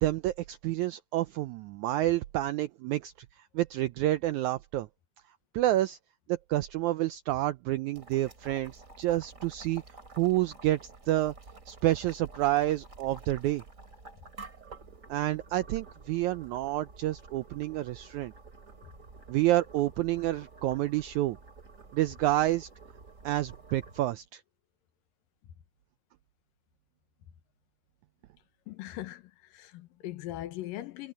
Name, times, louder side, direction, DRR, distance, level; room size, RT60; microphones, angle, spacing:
voice 1, 0.0-3.1 3.5-4.9 5.5-6.0 6.3-9.8 10.2-11.3 11.7-13.6 15.1-18.3 19.3-21.4 21.9-22.7 23.2-24.4, right 15 dB, 85° right, 1.7 m, -29 dB
Boiling, 7.9-24.0, right 3 dB, 25° right, 2.5 m, -50 dB
voice 2, 28.7-31.1, left 14 dB, 80° left, 2.7 m, -40 dB
omnidirectional pair, 4.0 m